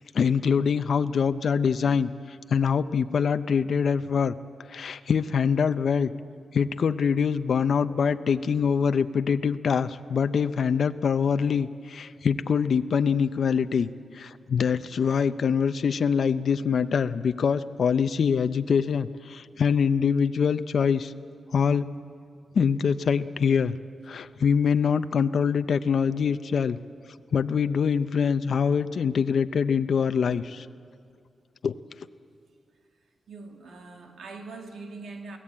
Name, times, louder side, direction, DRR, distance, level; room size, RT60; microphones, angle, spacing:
voice 1, 0.1-4.3 4.7-6.1 6.5-21.1 21.5-21.9 22.5-23.8 24.1-26.8 27.3-30.7 31.6-31.8, left 6 dB, 60° left, 11 dB, 0.5 m, -24 dB
voice 2, 33.3-35.4, right 3 dB, 80° right, 3 dB, 2.2 m, -42 dB
23.0 x 16.5 x 8.6 m, 2.2 s
wide cardioid pair, 140°, 0 cm